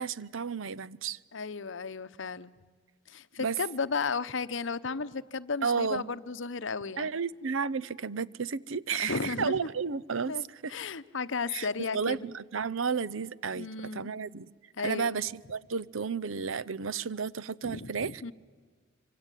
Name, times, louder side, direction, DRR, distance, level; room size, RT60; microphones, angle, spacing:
voice 1, 0.0-1.2 3.4-3.6 5.6-6.1 7.0-10.7 11.5-14.5 14.8-18.3, right 5 dB, 75° right, 0.7 m, -32 dB
voice 2, 1.3-2.5 3.1-7.1 9.0-9.6 10.3-10.4 10.7-12.3 13.5-14.1 14.8-15.2 17.6-18.3, left 4 dB, 70° left, 0.9 m, -34 dB
26.0 x 25.0 x 9.2 m
head